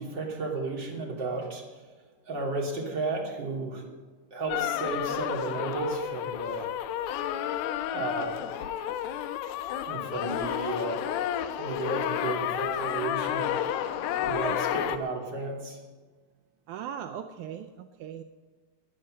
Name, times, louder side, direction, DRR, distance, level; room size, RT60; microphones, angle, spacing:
voice 1, 0.0-1.8 2.3-3.9 4.3-6.7 7.9-8.4 9.9-11.0 11.5-13.6 14.2-15.8, right 3 dB, 30° right, -1 dB, 3.2 m, -33 dB
sound 1, 4.5-15.0, left 10 dB, 85° left, 2.6 m, -31 dB
voice 2, 16.7-18.2, right 9 dB, 80° right, 7 dB, 1.8 m, -39 dB
16.0 x 10.5 x 6.6 m, 1.4 s
omnidirectional pair, 4.2 m